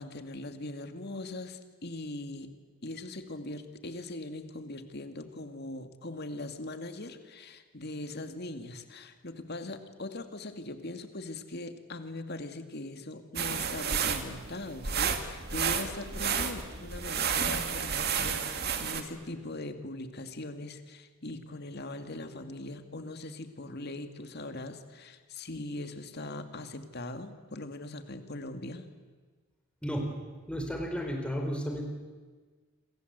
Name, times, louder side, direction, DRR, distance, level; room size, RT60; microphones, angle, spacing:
voice 1, 0.0-28.9, left 2 dB, 50° left, 8 dB, 2.3 m, -41 dB
sound 1, 13.4-19.0, right 7 dB, 50° right, 2.3 m, -31 dB
voice 2, 30.5-31.8, equal, 5° left, 2 dB, 4.1 m, -33 dB
28.0 x 26.0 x 8.2 m, 1.4 s
head